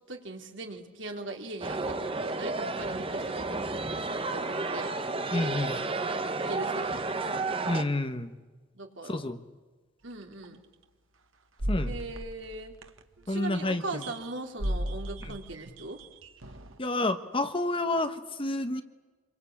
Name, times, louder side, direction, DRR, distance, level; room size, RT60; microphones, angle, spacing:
voice 1, 0.0-4.9 6.5-7.1 8.7-9.2 10.0-10.6 11.8-12.7 13.2-16.0, right 2 dB, 65° right, 3 dB, 3.4 m, -40 dB
sound 1, 1.6-7.8, right 3 dB, 25° right, 1.3 m, -32 dB
voice 2, 5.3-5.8 7.6-8.3 9.1-9.4 11.7-12.0 13.3-14.0 16.8-18.8, left 2 dB, 25° left, 9 dB, 1.2 m, -29 dB
sound 2, 10.4-10.6 11.6-13.2 14.0-14.3 14.6-16.8, equal, 80° right, 1.7 m, -35 dB
27.0 x 23.0 x 8.7 m, 1.3 s
head